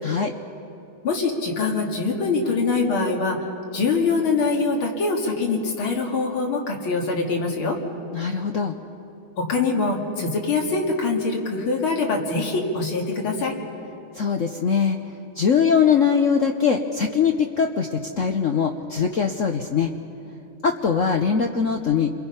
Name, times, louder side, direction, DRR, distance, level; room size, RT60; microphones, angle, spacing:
voice 1, 1.0-3.4 3.7-7.8 9.4-13.5, left 4 dB, 80° left, 0 dB, 3.0 m, -23 dB
voice 2, 8.1-8.8 14.1-15.0 15.4-19.9 20.6-22.1, left 6 dB, 60° left, 4 dB, 0.8 m, -21 dB
29.5 x 22.5 x 5.6 m, 2.8 s
omnidirectional pair, 2.2 m